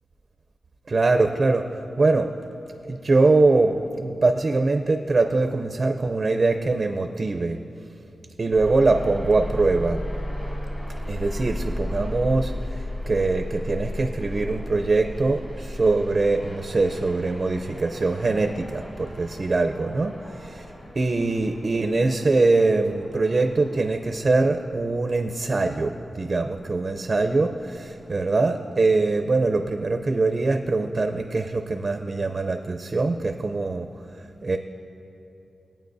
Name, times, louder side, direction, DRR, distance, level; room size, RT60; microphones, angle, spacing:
voice 1, 0.9-2.3 2.8-7.7 8.4-10.1 11.1-20.4 21.0-34.6, right 3 dB, 40° right, 6 dB, 0.5 m, -23 dB
sound 1, 8.5-28.2, left 1 dB, 35° left, 2.5 m, -36 dB
21.5 x 8.9 x 2.6 m, 2.8 s
wide cardioid pair, 100°, 0 cm